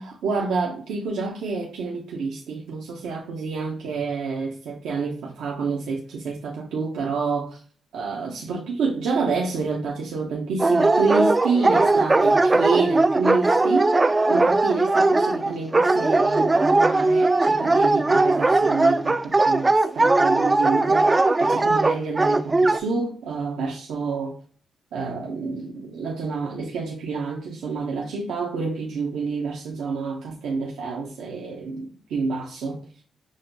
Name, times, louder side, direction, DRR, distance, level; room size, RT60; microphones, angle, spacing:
voice 1, 0.0-7.6 7.9-13.9 14.3-24.4 24.9-32.8, right 4 dB, 90° right, 0.6 m, -28 dB
Dog, 10.6-22.8, right 2 dB, 25° right, 0.3 m, -19 dB
6.1 x 2.1 x 2.6 m
cardioid pair, 65°, 0 cm